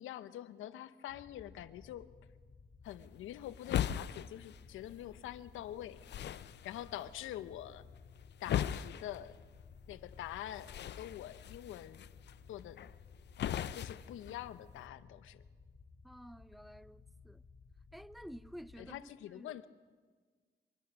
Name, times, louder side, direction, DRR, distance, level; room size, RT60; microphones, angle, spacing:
voice 1, 0.0-2.1 2.8-6.1 6.6-7.8 8.4-9.4 9.9-12.1 12.5-12.8 13.7-15.4 18.8-19.7, left 12 dB, 85° left, 0.9 m, -45 dB
sound 1, 1.1-19.0, left 4 dB, 30° left, 1.5 m, -58 dB
sound 2, 2.8-14.9, left 10 dB, 60° left, 0.7 m, -41 dB
voice 2, 16.0-17.4 17.9-19.6, equal, ahead, 0.6 m, -51 dB
24.0 x 23.0 x 6.2 m
cardioid pair, 90°, 20 cm